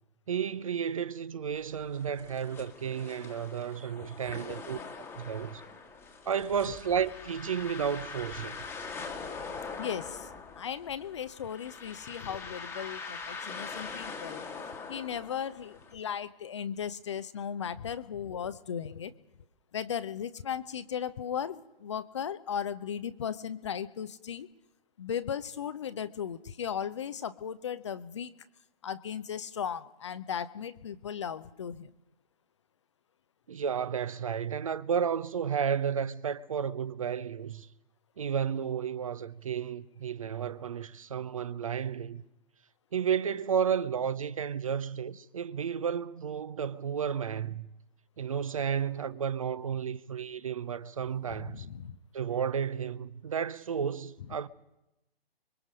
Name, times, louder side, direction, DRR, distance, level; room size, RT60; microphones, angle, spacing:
voice 1, 0.3-4.8 5.1-5.6 6.3-8.6 33.5-37.7 38.2-42.2 42.9-47.7 48.2-51.7 52.1-54.5, right 7 dB, 35° right, 0.7 m, -32 dB
sound 1, 1.6-15.9, left 4 dB, 5° left, 1.4 m, -43 dB
voice 2, 9.8-10.3 10.6-14.4 14.9-19.1 19.7-24.5 25.0-28.3 28.8-31.9 51.3-52.0, left 8 dB, 30° left, 0.7 m, -36 dB
25.0 x 23.0 x 5.2 m
figure-of-eight pair, 135°, 31 cm